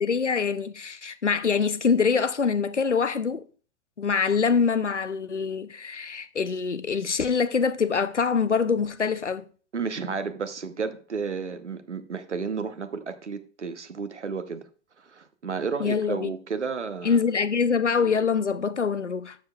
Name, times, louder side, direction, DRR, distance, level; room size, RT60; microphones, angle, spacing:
voice 1, 0.0-3.4 4.0-9.4 15.8-16.3 17.0-19.4, left 5 dB, 90° left, 0.6 m, -24 dB
voice 2, 9.7-14.7 15.0-17.2, right 5 dB, 85° right, 0.9 m, -32 dB
12.5 x 7.0 x 2.3 m
figure-of-eight pair, 85°, 34 cm